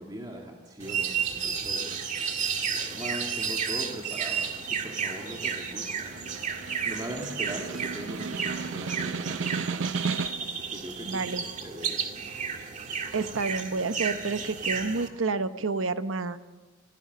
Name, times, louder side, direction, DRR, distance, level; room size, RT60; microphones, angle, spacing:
voice 1, 0.0-9.9 10.4-11.3 11.6-12.1, right 1 dB, 20° right, 0 dB, 2.1 m, -41 dB
sound 1, 0.8-15.1, right 6 dB, 40° right, 2.0 m, -32 dB
Snare drum, 5.7-10.6, right 5 dB, 65° right, 0.5 m, -34 dB
voice 2, 11.1-11.4 13.1-16.4, right 4 dB, 85° right, 11 dB, 0.9 m, -29 dB
24.0 x 17.0 x 6.6 m, 1.3 s
head